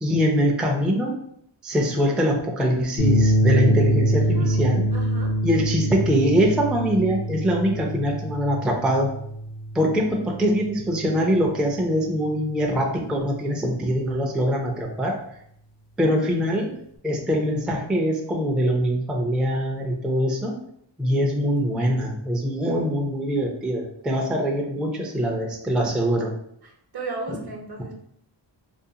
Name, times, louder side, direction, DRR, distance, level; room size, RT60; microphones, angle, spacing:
voice 1, 0.0-1.2 1.6-4.9 5.4-9.1 9.7-15.2 16.0-16.7 17.0-20.5 21.0-26.3, equal, ahead, 0 dB, 0.4 m, -23 dB
sound 1, 3.0-11.5, right 1 dB, 80° left, 0.7 m, -24 dB
voice 2, 4.9-5.3 16.0-16.3 21.6-21.7 26.6-27.9, right 3 dB, 55° right, 1 dB, 0.8 m, -36 dB
2.5 x 2.3 x 2.7 m, 0.71 s
cardioid pair, 55°, 46 cm